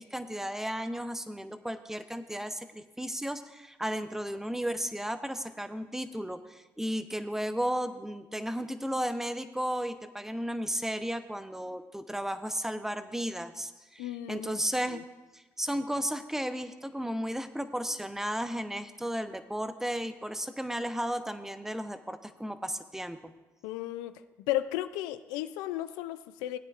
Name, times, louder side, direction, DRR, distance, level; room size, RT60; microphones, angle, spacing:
voice 1, 0.0-15.0 15.3-23.3, equal, 5° right, 10 dB, 0.7 m, -34 dB
voice 2, 14.0-14.5 14.9-15.0 23.6-24.2 24.5-26.6, left 14 dB, 90° left, 12 dB, 0.4 m, -34 dB
17.5 x 9.1 x 2.5 m, 1.1 s
supercardioid pair, 60°, 7 cm